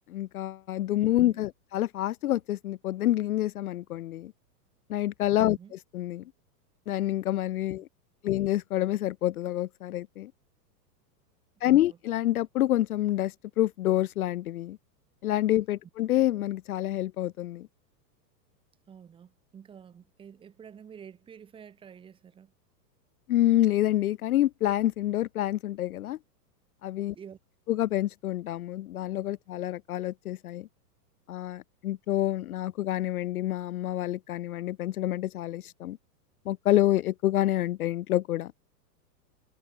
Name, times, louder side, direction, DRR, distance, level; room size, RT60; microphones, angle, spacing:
voice 1, 0.1-4.3 4.9-6.2 6.9-7.9 8.2-10.3 11.6-14.8 15.2-17.7 23.3-26.2 26.8-27.1 27.7-30.7 31.3-36.0 36.5-38.5, left 14 dB, 60° left, 0.9 m, -27 dB
voice 2, 1.0-1.5 5.4-5.7 7.7-7.8 8.2-8.4 11.6-12.0 18.9-22.5 27.1-27.4, right 7 dB, 10° right, 3.6 m, -50 dB
supercardioid pair, 180°, 50 cm